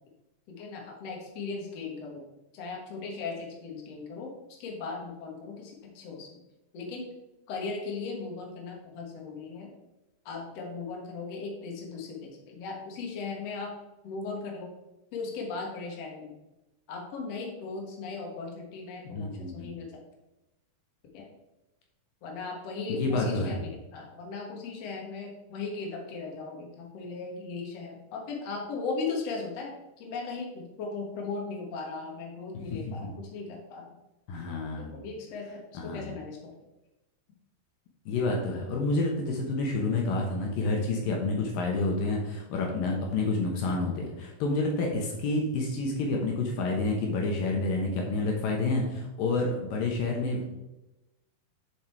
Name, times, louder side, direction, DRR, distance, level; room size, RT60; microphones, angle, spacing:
voice 1, 0.5-2.3 2.5-4.3 4.6-6.4 6.7-7.1 7.5-9.7 10.3-13.7 14.0-14.7 15.1-16.3 16.9-19.9 21.1-21.3 22.2-33.9 34.8-36.6, left 4 dB, 55° left, 0 dB, 2.3 m, -37 dB
voice 2, 19.1-19.7 22.9-23.6 32.7-33.1 34.3-34.9 35.7-36.1 38.1-50.6, left 3 dB, 75° left, 0 dB, 2.7 m, -29 dB
7.1 x 6.5 x 4.5 m, 0.98 s
omnidirectional pair, 4.2 m